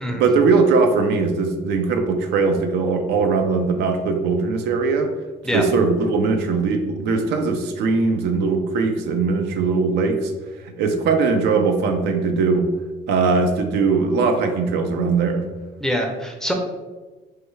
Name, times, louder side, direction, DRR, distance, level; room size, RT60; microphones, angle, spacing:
voice 1, 0.1-5.1 5.5-10.3 10.6-12.7 13.1-15.4, right 4 dB, 80° right, 6 dB, 0.4 m, -20 dB
voice 2, 15.8-16.5, equal, 5° left, 2 dB, 0.4 m, -24 dB
3.2 x 2.2 x 3.1 m, 1.3 s
cardioid pair, 110°, 17 cm